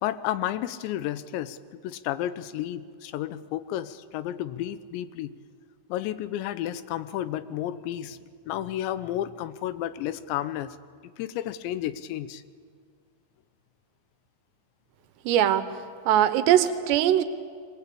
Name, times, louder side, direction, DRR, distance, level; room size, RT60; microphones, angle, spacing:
voice 1, 0.0-1.6 1.8-5.3 5.9-8.2 8.5-10.8 11.2-12.4, left 12 dB, 85° left, 14 dB, 3.1 m, -32 dB
voice 2, 15.3-15.7 16.1-17.2, right 11 dB, 80° right, 11 dB, 3.1 m, -21 dB
23.5 x 19.0 x 8.5 m, 2.1 s
omnidirectional pair, 5.0 m